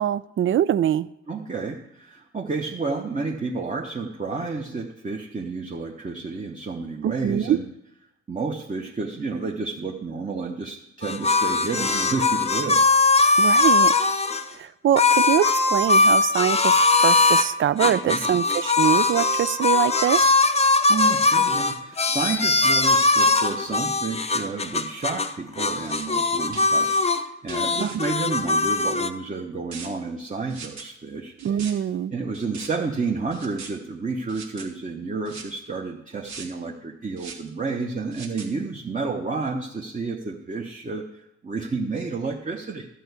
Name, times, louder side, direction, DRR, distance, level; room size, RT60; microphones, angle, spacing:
voice 1, 0.0-1.1 7.0-7.6 13.4-13.9 14.5-20.3 27.8-28.0 31.4-32.1, right 10 dB, 45° right, 0.4 m, -23 dB
voice 2, 1.3-7.6 8.3-12.8 17.9-18.2 20.9-31.7 32.1-41.1 41.4-42.9, right 4 dB, 25° right, 1.1 m, -30 dB
sound 1, 11.0-14.4 15.0-17.5 17.8-25.3 25.6-27.2 27.5-29.1, left 3 dB, 20° left, 0.6 m, -20 dB
sound 2, 25.7-26.1 26.5-27.0 27.5-28.0 29.7-29.9 30.5-30.8 31.4-31.7 32.3-32.7 33.3-33.7 34.3-34.6 35.2-35.6 36.2-36.4 37.2-37.5 38.1-38.5, right 5 dB, 70° right, 1.7 m, -40 dB
12.0 x 4.6 x 8.1 m
cardioid pair, 90°, 30 cm